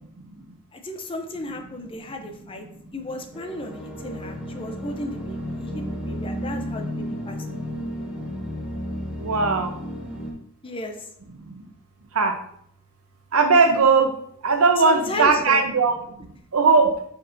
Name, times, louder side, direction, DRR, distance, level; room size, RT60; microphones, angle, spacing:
voice 1, 0.7-2.7 2.9-7.7 10.6-11.1 14.8-15.7, left 1 dB, 25° left, 5 dB, 0.6 m, -34 dB
sound 1, 3.3-10.3, equal, 5° right, 1.2 m, -32 dB
voice 2, 9.2-9.7 11.4-11.7 12.1-12.4 13.3-14.1 14.4-16.3 16.5-17.0, right 4 dB, 85° right, 7 dB, 0.8 m, -19 dB
7.0 x 5.3 x 2.7 m, 0.69 s
head